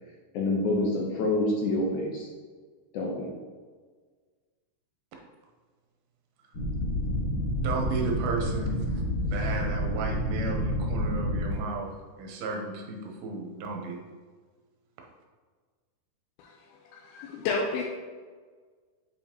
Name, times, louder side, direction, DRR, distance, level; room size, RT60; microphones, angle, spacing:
voice 1, 0.3-2.3 2.9-3.3, left 2 dB, 70° left, -2 dB, 2.0 m, -27 dB
sound 1, 6.5-11.5, equal, 55° left, 1.8 m, -29 dB
voice 2, 7.6-9.0 9.3-11.9 12.2-14.0, right 3 dB, 75° right, 1 dB, 2.6 m, -33 dB
voice 3, 17.0-17.8, left 4 dB, 85° left, -1 dB, 2.6 m, -30 dB
7.7 x 5.0 x 2.9 m, 1.5 s
omnidirectional pair, 4.4 m